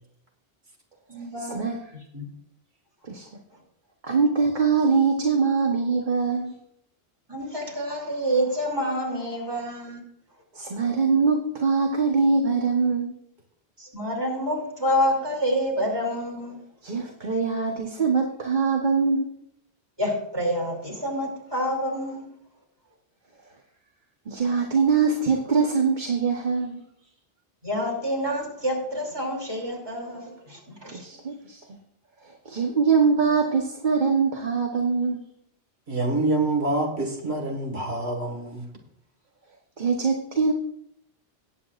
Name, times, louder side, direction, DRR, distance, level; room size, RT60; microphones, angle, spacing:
voice 1, 1.1-2.3 3.5-3.6 7.3-10.0 13.8-16.6 20.0-22.3 27.6-31.2, equal, 20° right, -2 dB, 2.9 m, -28 dB
voice 2, 4.0-6.5 10.5-13.1 16.8-19.3 24.3-26.8 30.9-31.6 32.4-35.2 39.8-40.5, right 5 dB, 50° right, 1 dB, 1.2 m, -23 dB
voice 3, 35.9-38.7, right 2 dB, 80° right, 2 dB, 2.0 m, -26 dB
19.5 x 8.2 x 2.5 m, 0.72 s
omnidirectional pair, 1.1 m